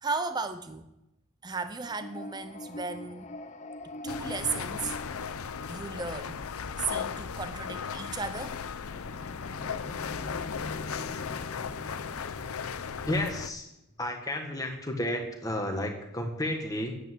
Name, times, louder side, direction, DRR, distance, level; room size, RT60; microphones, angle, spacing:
voice 1, 0.0-0.8 1.4-3.3 4.0-5.0 5.7-6.4 6.8-8.6, right 4 dB, 20° right, 10 dB, 0.6 m, -35 dB
sound 1, 1.8-6.2 8.7-13.7, left 2 dB, 35° left, 0.6 m, -43 dB
sound 2, 4.1-13.5, left 6 dB, 90° left, 0.6 m, -36 dB
voice 2, 13.0-13.7 14.0-16.9, left 1 dB, 15° left, 3 dB, 1.6 m, -32 dB
9.7 x 9.0 x 7.7 m, 0.87 s
head